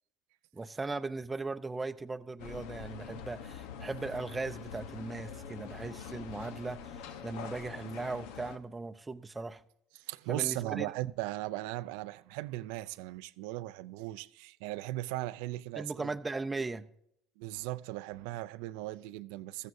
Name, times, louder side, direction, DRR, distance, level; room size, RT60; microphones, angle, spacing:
voice 1, 0.5-9.6 10.3-10.9 15.8-16.9, right 3 dB, 15° right, 0.6 m, -38 dB
sound 1, 2.4-8.6, left 7 dB, 85° left, 0.9 m, -45 dB
voice 2, 10.0-16.1 17.4-19.7, right 17 dB, 90° right, 0.4 m, -38 dB
15.5 x 14.0 x 2.7 m
cardioid pair, 115°, 0 cm